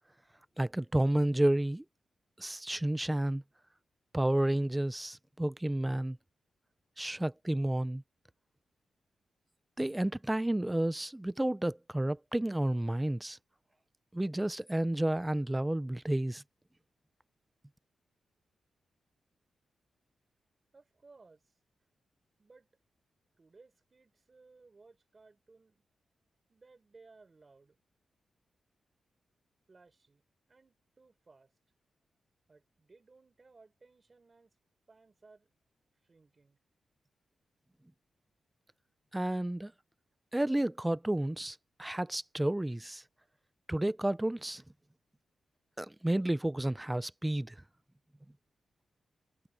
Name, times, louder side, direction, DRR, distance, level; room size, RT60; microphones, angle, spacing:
voice 1, 0.6-1.8 2.4-3.4 4.1-6.2 7.0-8.0 9.8-13.4 14.1-16.4 39.1-39.7 40.3-43.0 43.7-44.6 45.8-47.6, right 1 dB, 10° right, 0.4 m, -31 dB
voice 2, 20.7-21.6 22.4-22.7 23.4-25.8 26.5-27.8 29.7-30.2 30.5-31.5 32.5-34.6 34.9-35.5 35.8-36.6, right 3 dB, 25° right, 5.5 m, -61 dB
wide cardioid pair, 175°, 0 cm